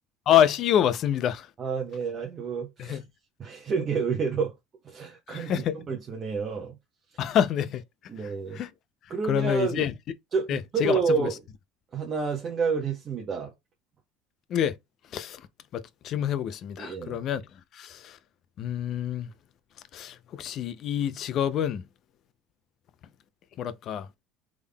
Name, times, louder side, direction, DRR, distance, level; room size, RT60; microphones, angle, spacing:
voice 1, 0.3-1.5 2.8-3.0 5.3-5.8 7.2-7.8 8.5-8.7 9.3-9.9 10.5-11.3 14.5-14.8 15.1-15.4 15.7-17.4 17.7-18.2 18.6-19.3 19.9-21.8 23.6-24.1, left 10 dB, 50° left, 0.5 m, -27 dB
voice 2, 1.6-3.0 3.4-4.5 4.8-6.8 8.1-8.6 9.1-9.8 10.3-11.3 11.9-13.5 16.8-17.2, right 5 dB, 30° right, 0.9 m, -29 dB
3.6 x 3.5 x 2.2 m
cardioid pair, 130°, 0 cm